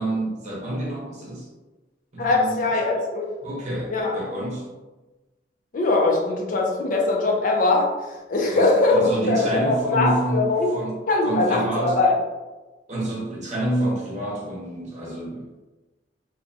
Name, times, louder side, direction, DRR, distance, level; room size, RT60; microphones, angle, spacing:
voice 1, 0.0-1.5 2.1-2.6 3.4-4.7 8.5-11.0 11.2-12.0 12.9-15.5, right 1 dB, 40° right, -4 dB, 0.7 m, -28 dB
voice 2, 2.2-3.3 3.9-4.1 5.7-10.7 11.1-12.1, left 2 dB, 50° left, 0 dB, 0.5 m, -21 dB
2.5 x 2.2 x 2.6 m, 1.1 s
head